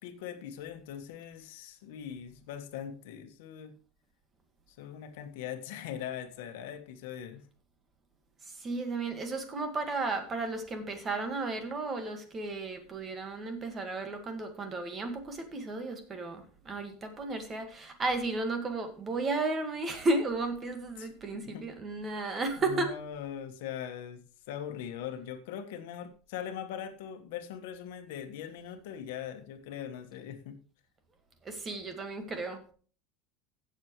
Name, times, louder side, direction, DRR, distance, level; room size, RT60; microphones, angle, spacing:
voice 1, 0.0-3.7 4.8-7.4 21.0-21.1 21.4-21.6 22.6-24.2 24.5-30.6, left 9 dB, 75° left, 7 dB, 1.4 m, -41 dB
voice 2, 8.4-22.9 31.4-32.6, right 3 dB, 20° right, 6 dB, 1.7 m, -34 dB
16.0 x 7.3 x 3.1 m, 0.40 s
cardioid pair, 165°, 0 cm